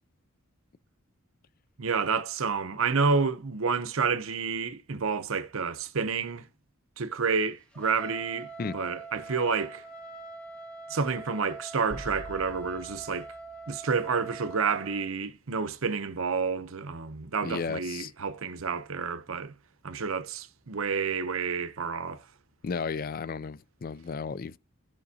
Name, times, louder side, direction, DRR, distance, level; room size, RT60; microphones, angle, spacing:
voice 1, 1.8-6.5 7.0-9.8 10.9-13.3 13.7-19.5 19.8-22.2, right 5 dB, 75° right, 0.7 m, -29 dB
Trumpet, 7.7-15.1, right 2 dB, 5° left, 1.5 m, -44 dB
sound 1, 11.9-14.5, right 1 dB, 20° right, 1.9 m, -46 dB
voice 2, 17.4-18.1 22.6-24.6, left 5 dB, 45° left, 0.4 m, -34 dB
13.5 x 5.1 x 2.8 m
head